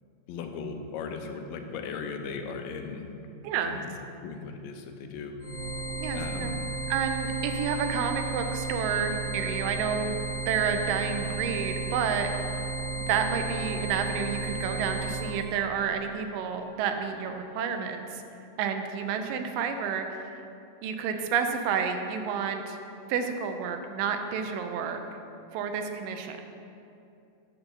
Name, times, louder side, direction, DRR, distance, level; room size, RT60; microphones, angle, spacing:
voice 1, 0.3-3.0 3.6-4.0 4.2-5.4 6.2-6.5, left 5 dB, 85° left, 5 dB, 2.3 m, -37 dB
voice 2, 3.4-3.8 6.0-6.6 6.9-10.1 10.5-12.3 13.1-18.2 18.6-20.4 20.8-22.8 23.1-25.0 25.5-26.4, right 6 dB, 80° right, 6 dB, 2.3 m, -30 dB
sound 1, 5.4-15.4, right 3 dB, 45° right, 1.1 m, -33 dB
9.1 x 6.6 x 4.5 m, 2.7 s
omnidirectional pair, 4.0 m